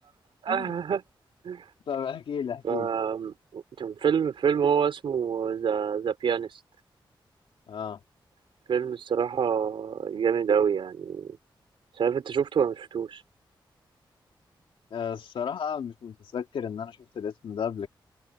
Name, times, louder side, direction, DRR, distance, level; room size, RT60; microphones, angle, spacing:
voice 1, 0.4-1.0 1.4-1.7 2.6-6.6 8.7-11.4 12.0-13.2, right 7 dB, 80° right, 3.8 m, -27 dB
voice 2, 1.9-2.9 7.7-8.0 14.9-17.9, left 7 dB, 85° left, 2.5 m, -33 dB
open air
wide cardioid pair, 115°, 9 cm